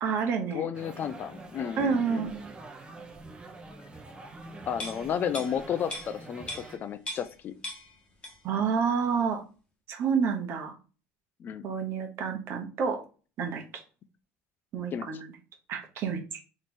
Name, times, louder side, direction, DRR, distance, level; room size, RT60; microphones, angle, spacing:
voice 1, 0.0-0.7 1.8-2.5 8.4-9.4 9.9-10.8 11.6-13.0 13.4-13.8 14.7-15.3 15.7-16.4, right 6 dB, 50° right, 4 dB, 1.0 m, -29 dB
voice 2, 0.5-2.3 4.7-7.5 11.4-11.7 14.9-15.1, left 8 dB, 35° left, 12 dB, 0.4 m, -32 dB
sound 1, 0.7-6.8, right 2 dB, 15° right, 0.6 m, -46 dB
sound 2, 4.7-7.4 7.6-8.6 8.9-9.1, left 1 dB, 20° left, 1.2 m, -40 dB
3.3 x 3.0 x 4.2 m, 0.35 s
cardioid pair, 145°, 5 cm